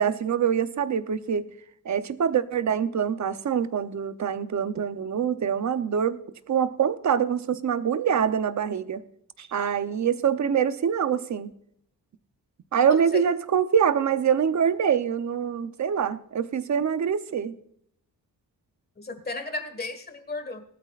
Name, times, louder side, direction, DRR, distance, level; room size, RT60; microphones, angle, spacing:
voice 1, 0.0-1.5 1.8-6.2 6.5-9.0 9.4-11.5 12.7-17.5, right 8 dB, 50° right, 12 dB, 0.8 m, -25 dB
voice 2, 12.9-13.2 19.0-20.6, left 2 dB, 25° left, 8 dB, 1.6 m, -34 dB
19.0 x 12.5 x 2.5 m, 0.67 s
wide cardioid pair, 160°, 37 cm